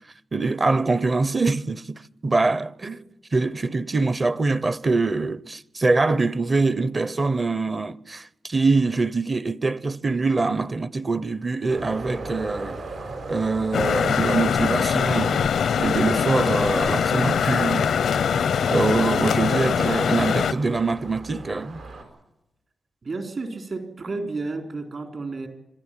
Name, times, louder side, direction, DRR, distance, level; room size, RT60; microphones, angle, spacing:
voice 1, 0.3-3.0 3.3-12.8 13.3-15.5 15.8-17.9 18.7-21.8, right 3 dB, 30° right, 0.7 m, -24 dB
sound 1, 11.7-22.0, right 3 dB, 85° right, 5.6 m, -39 dB
sound 2, 13.7-20.5, left 7 dB, 90° left, 0.6 m, -22 dB
voice 2, 23.0-25.5, right 3 dB, 55° right, 3.7 m, -31 dB
26.5 x 12.0 x 8.9 m
wide cardioid pair, 110°, 0 cm